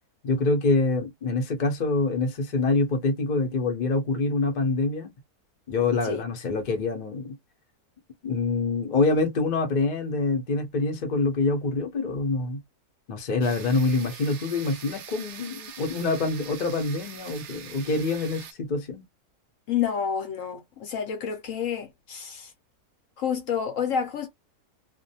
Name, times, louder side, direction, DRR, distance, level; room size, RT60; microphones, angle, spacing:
voice 1, 0.2-5.1 5.7-7.4 8.2-12.6 13.1-19.0, left 3 dB, 45° left, 0.6 m, -25 dB
sound 1, 13.4-18.5, right 8 dB, 70° right, 0.7 m, -43 dB
voice 2, 19.7-22.5 23.2-24.3, left 7 dB, 65° left, 0.9 m, -29 dB
2.5 x 2.2 x 2.6 m
omnidirectional pair, 1.6 m